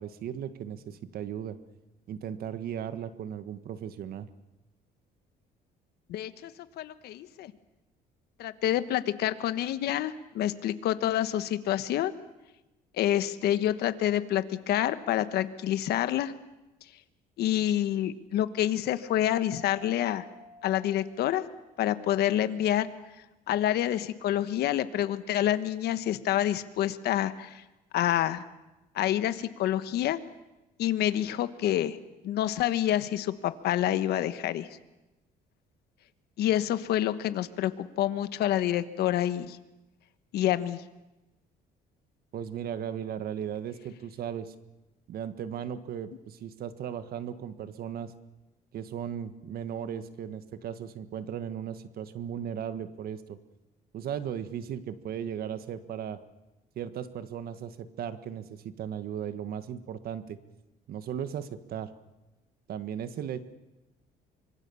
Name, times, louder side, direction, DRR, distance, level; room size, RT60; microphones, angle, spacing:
voice 1, 0.0-1.6 2.1-4.3 42.3-44.5 45.1-48.1 48.7-53.4 53.9-56.2 56.8-60.4 60.9-61.9 62.7-63.4, right 9 dB, 65° right, 11 dB, 1.6 m, -36 dB
voice 2, 6.1-7.5 8.4-12.1 12.9-16.3 17.4-20.2 20.6-21.4 21.8-22.9 23.5-27.6 27.9-28.4 28.9-30.2 30.8-32.0 32.2-34.7 36.4-39.6 40.3-40.8, left 12 dB, 75° left, 12 dB, 1.3 m, -28 dB
Mallet percussion, 19.5-22.0, left 1 dB, 45° right, 5.5 m, -52 dB
25.0 x 24.0 x 7.1 m, 1.0 s
cardioid pair, 110°, 17 cm